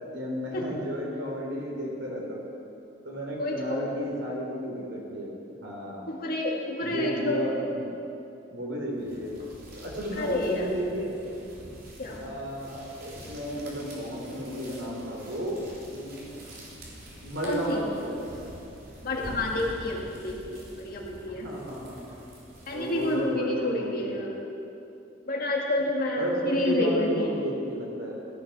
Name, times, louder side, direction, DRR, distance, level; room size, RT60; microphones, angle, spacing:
voice 1, 0.1-2.5 3.0-5.3 5.6-6.1 6.8-7.9 8.5-9.4 9.8-11.2 12.2-16.3 17.2-18.2 21.3-22.1 22.7-24.3 26.2-28.2, equal, 70° right, -2 dB, 3.7 m, -33 dB
voice 2, 3.4-4.3 6.1-7.5 10.2-10.7 12.0-12.2 17.4-17.9 19.0-21.5 22.7-24.4 25.3-27.4, left 1 dB, 50° left, -1 dB, 2.2 m, -29 dB
sound 1, 8.9-23.4, right 1 dB, 55° right, 3.5 m, -46 dB
16.5 x 11.5 x 6.1 m, 2.8 s
head